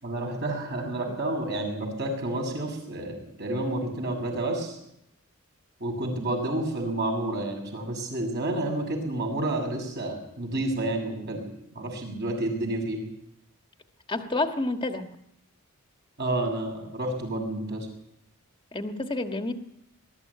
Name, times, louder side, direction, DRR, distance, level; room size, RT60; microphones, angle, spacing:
voice 1, 0.0-4.8 5.8-11.5 11.7-13.1 16.2-17.9, right 1 dB, 50° right, 1 dB, 6.8 m, -30 dB
voice 2, 14.1-15.0 18.7-19.5, left 2 dB, 20° left, 6 dB, 1.5 m, -29 dB
21.5 x 13.5 x 9.6 m, 0.78 s
head